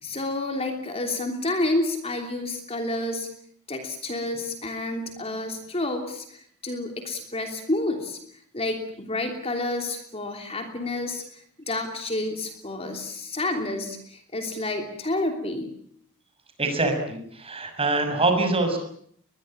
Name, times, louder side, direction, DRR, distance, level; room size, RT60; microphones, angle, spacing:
voice 1, 0.0-3.3 3.7-8.2 8.5-15.7, left 2 dB, 30° left, 5 dB, 3.1 m, -29 dB
voice 2, 16.6-18.8, right 2 dB, 25° right, 5 dB, 6.4 m, -24 dB
22.0 x 22.0 x 8.9 m, 0.66 s
head